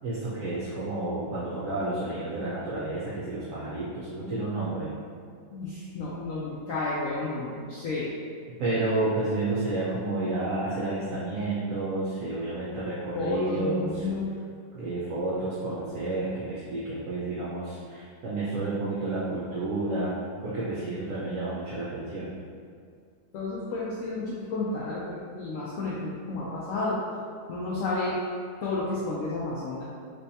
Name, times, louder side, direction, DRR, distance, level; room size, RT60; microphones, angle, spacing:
voice 1, 0.0-4.9 8.6-14.0 14.7-20.1 20.4-22.3, right 2 dB, 60° right, -9 dB, 1.0 m, -30 dB
voice 2, 5.5-8.1 13.1-14.3 23.3-27.0 27.5-28.2 28.6-29.8, left 3 dB, 70° left, -7 dB, 0.8 m, -31 dB
3.4 x 3.1 x 2.7 m, 2.2 s
omnidirectional pair, 1.7 m